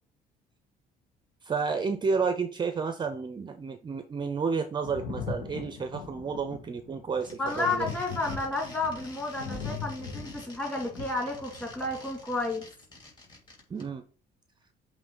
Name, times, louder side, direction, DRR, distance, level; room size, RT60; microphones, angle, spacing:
voice 1, 1.4-7.9 13.7-14.0, right 5 dB, 25° right, 9 dB, 0.5 m, -31 dB
Thunder, 4.8-12.2 13.3-13.4, left 5 dB, 90° left, 1.5 m, -40 dB
sound 1, 7.1-13.8, left 2 dB, 25° left, 3.1 m, -49 dB
voice 2, 7.4-12.7, left 2 dB, 10° left, 0 dB, 2.5 m, -31 dB
7.8 x 3.1 x 3.8 m, 0.40 s
cardioid pair, 110°, 17 cm